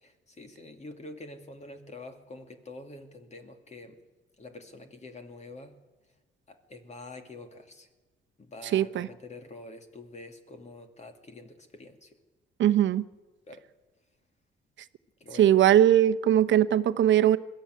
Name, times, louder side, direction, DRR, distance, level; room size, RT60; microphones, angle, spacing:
voice 1, 0.0-4.0 4.4-5.8 6.5-7.9 8.4-12.2 13.5-13.6 15.2-15.5, left 2 dB, 35° left, 6 dB, 2.6 m, -46 dB
voice 2, 8.7-9.1 12.6-13.0 15.4-17.4, right 11 dB, 70° right, 10 dB, 0.9 m, -20 dB
21.0 x 13.0 x 9.5 m, 1.2 s
cardioid pair, 90°, 20 cm